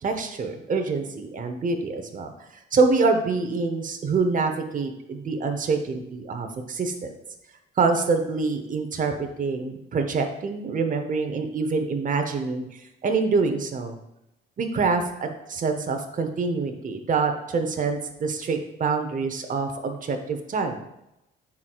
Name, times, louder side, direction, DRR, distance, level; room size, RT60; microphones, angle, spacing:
voice 1, 0.0-2.3 2.7-7.1 7.8-14.0 14.6-20.8, right 4 dB, 40° right, 5 dB, 0.9 m, -26 dB
9.6 x 4.5 x 2.4 m, 0.85 s
cardioid pair, 90°, 20 cm